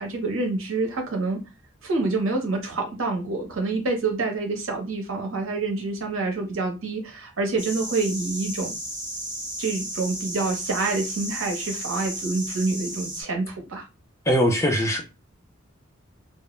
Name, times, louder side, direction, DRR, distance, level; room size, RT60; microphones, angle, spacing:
voice 1, 0.0-1.4 1.8-8.7 9.6-13.8, right 3 dB, 85° right, 0.7 m, -27 dB
sound 1, 7.6-13.2, right 1 dB, 5° right, 1.1 m, -34 dB
voice 2, 14.3-15.0, equal, 15° left, 0.4 m, -21 dB
2.0 x 2.0 x 3.0 m
head